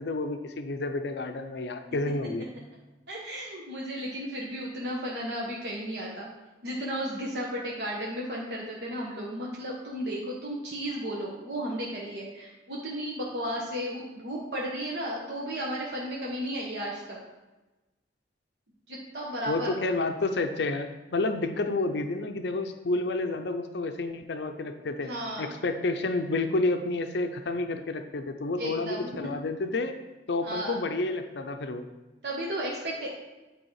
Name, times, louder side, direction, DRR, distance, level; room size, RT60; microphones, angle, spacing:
voice 1, 0.0-2.4 19.5-25.1 25.4-29.9 30.3-31.9, left 2 dB, 70° left, 6 dB, 0.6 m, -30 dB
voice 2, 3.1-6.3 6.6-17.2 18.9-19.7 25.0-25.5 28.6-29.1 30.4-30.8 32.2-33.1, equal, 70° right, -4 dB, 1.3 m, -34 dB
9.0 x 4.9 x 4.7 m, 1.1 s
head